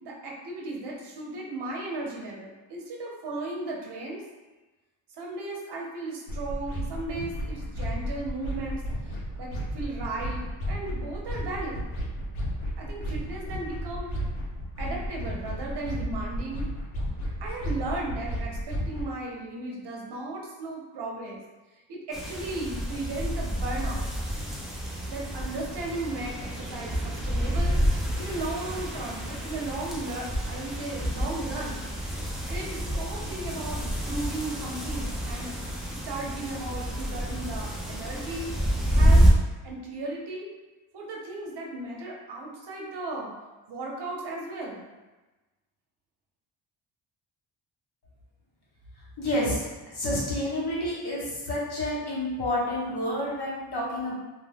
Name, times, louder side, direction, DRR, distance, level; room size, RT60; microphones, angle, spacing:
voice 1, 0.0-4.2 5.2-11.8 12.8-14.1 14.8-16.7 17.4-21.4 21.9-24.1 25.1-27.8 28.2-31.8 32.5-35.5 36.0-38.5 38.9-39.3 39.6-40.5 40.9-43.3 43.7-44.9, right 2 dB, 55° right, -2 dB, 0.8 m, -36 dB
sound 1, 6.3-19.1, equal, 90° left, 0.8 m, -33 dB
sound 2, 22.1-39.3, equal, ahead, 0.5 m, -28 dB
voice 2, 49.2-49.7 49.9-54.1, left 1 dB, 55° left, -5 dB, 1.2 m, -29 dB
2.4 x 2.2 x 3.4 m, 1.2 s
cardioid pair, 70°, 47 cm